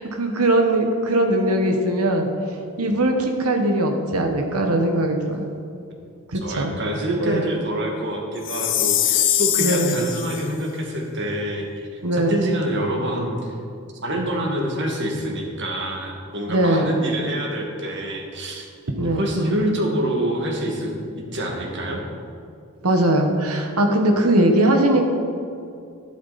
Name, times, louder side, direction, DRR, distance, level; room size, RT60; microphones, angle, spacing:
voice 1, 0.1-2.3 2.8-5.5 6.3-6.7 7.2-7.5 9.6-9.9 12.0-12.4 16.5-16.9 19.0-19.2 22.8-25.1, right 1 dB, 80° right, 3 dB, 1.4 m, -20 dB
voice 2, 6.4-13.5 14.0-18.7 19.0-22.0, right 1 dB, 55° right, 0 dB, 2.1 m, -26 dB
Chime, 8.4-10.4, left 11 dB, 55° left, 0.8 m, -22 dB
12.5 x 11.5 x 4.2 m, 2.4 s
head